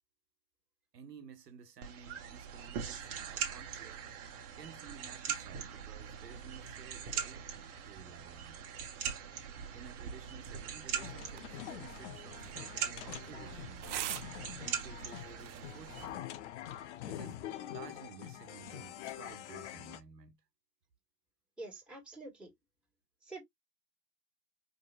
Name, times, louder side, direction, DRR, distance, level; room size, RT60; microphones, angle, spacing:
voice 1, 0.9-4.0 4.6-8.6 9.7-14.2 14.6-16.2 17.1-20.4, right 7 dB, 85° right, 1.5 m, -54 dB
sound 1, 1.8-16.1, right 8 dB, 30° right, 1.2 m, -42 dB
sound 2, 11.0-20.0, left 12 dB, 45° left, 0.7 m, -45 dB
sound 3, 11.2-16.2, right 13 dB, 50° right, 0.6 m, -46 dB
voice 2, 21.6-22.5 23.2-23.4, right 2 dB, ahead, 1.9 m, -46 dB
5.0 x 3.0 x 2.3 m
hypercardioid pair, 135°, 48 cm